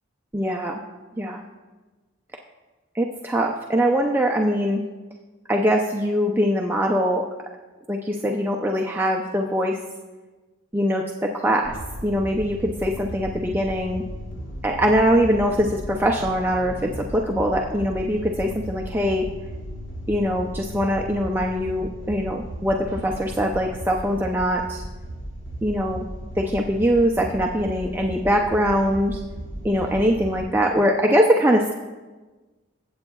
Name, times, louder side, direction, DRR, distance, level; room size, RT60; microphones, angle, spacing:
voice 1, 0.3-0.8 1.2-1.4 2.9-4.8 5.5-7.3 7.9-9.8 10.7-11.8 12.0-14.0 14.6-19.3 20.1-24.8 25.6-26.0 26.4-29.2 29.6-31.7, equal, 10° right, 0 dB, 0.5 m, -22 dB
sound 1, 11.6-30.4, equal, 70° left, 2.2 m, -36 dB
22.5 x 8.1 x 2.3 m, 1.2 s
head